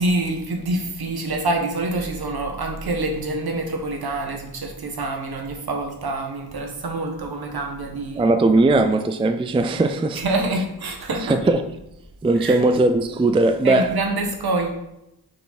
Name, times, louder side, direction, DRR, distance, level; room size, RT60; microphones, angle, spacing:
voice 1, 0.0-8.3 10.1-11.4 12.3-12.6 13.6-14.7, right 2 dB, 65° right, 1.4 m, -26 dB
voice 2, 8.2-10.2 11.3-11.6 12.2-13.9, right 2 dB, 15° right, 0.3 m, -19 dB
6.3 x 5.7 x 4.1 m
wide cardioid pair, 95°, 41 cm